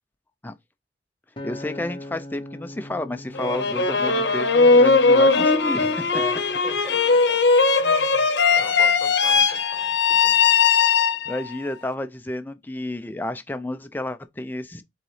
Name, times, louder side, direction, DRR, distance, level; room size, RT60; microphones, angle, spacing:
Acoustic guitar, 1.4-5.7 6.3-6.6, left 1 dB, 30° left, 0.8 m, -41 dB
voice 1, 1.4-6.1 11.3-14.8, left 1 dB, 10° left, 0.4 m, -31 dB
sound 1, 3.3-11.6, left 4 dB, 75° left, 0.8 m, -19 dB
voice 2, 6.1-7.4 7.8-10.4, left 2 dB, 15° right, 4.4 m, -40 dB
7.4 x 3.9 x 3.2 m
head